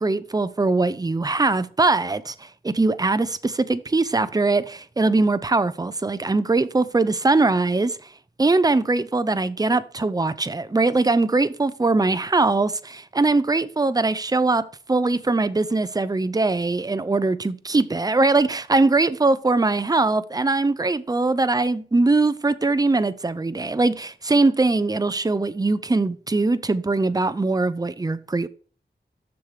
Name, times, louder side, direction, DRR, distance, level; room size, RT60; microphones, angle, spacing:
voice 1, 0.0-8.0 8.4-28.5, right 3 dB, 20° right, 0.5 m, -21 dB
6.9 x 6.6 x 4.9 m
wide cardioid pair, 95°, 18 cm